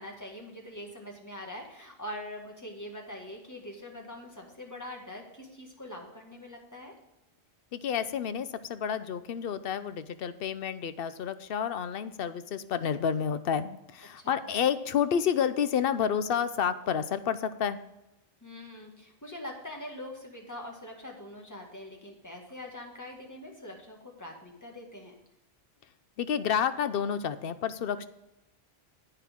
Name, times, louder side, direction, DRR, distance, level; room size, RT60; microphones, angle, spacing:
voice 1, 0.0-6.9 14.2-14.5 18.4-25.1, left 1 dB, 15° left, 0 dB, 1.9 m, -43 dB
voice 2, 7.7-17.8 26.2-28.1, left 8 dB, 65° left, 12 dB, 0.8 m, -30 dB
10.0 x 9.0 x 3.6 m, 0.91 s
omnidirectional pair, 1.1 m